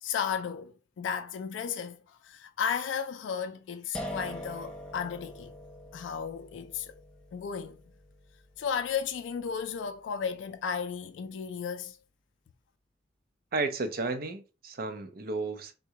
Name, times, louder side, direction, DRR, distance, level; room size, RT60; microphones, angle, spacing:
voice 1, 0.0-5.5 5.9-7.0 7.3-7.8 8.6-12.0, left 7 dB, 80° left, 0.3 m, -34 dB
sound 1, 3.9-10.9, equal, 5° left, 0.5 m, -45 dB
voice 2, 13.5-15.8, right 3 dB, 55° right, 0.5 m, -33 dB
3.6 x 2.2 x 2.8 m
head